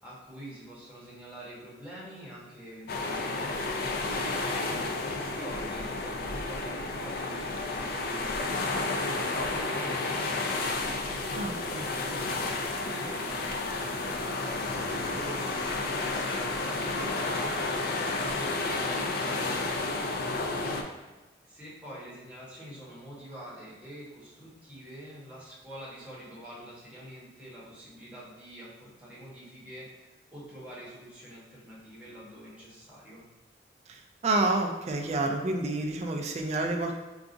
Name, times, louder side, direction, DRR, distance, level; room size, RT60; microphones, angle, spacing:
voice 1, 0.0-11.2 12.0-17.4 17.7-20.6 20.9-21.0 21.4-33.2, equal, 10° right, -8 dB, 1.0 m, -46 dB
sound 1, 2.9-20.8, left 3 dB, 55° left, 0.3 m, -31 dB
voice 2, 11.4-11.8 33.9-36.9, right 2 dB, 35° right, 3 dB, 0.3 m, -29 dB
3.8 x 2.4 x 2.5 m, 1.2 s
head